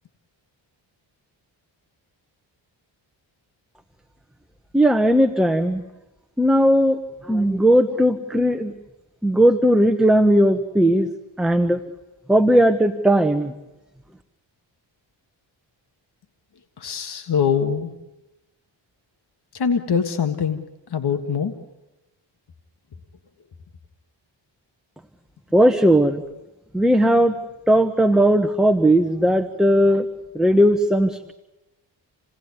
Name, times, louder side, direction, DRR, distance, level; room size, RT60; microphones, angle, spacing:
voice 1, 4.7-5.8 6.4-8.7 9.2-11.1 11.4-11.8 12.3-13.5 25.5-26.2 26.7-27.4 27.7-30.1 30.3-31.3, equal, ahead, 7 dB, 1.3 m, -17 dB
voice 2, 16.8-17.9 19.5-20.6 20.9-21.5, left 7 dB, 55° left, 7 dB, 1.7 m, -23 dB
29.0 x 18.5 x 9.6 m, 1.0 s
cardioid pair, 85°, 46 cm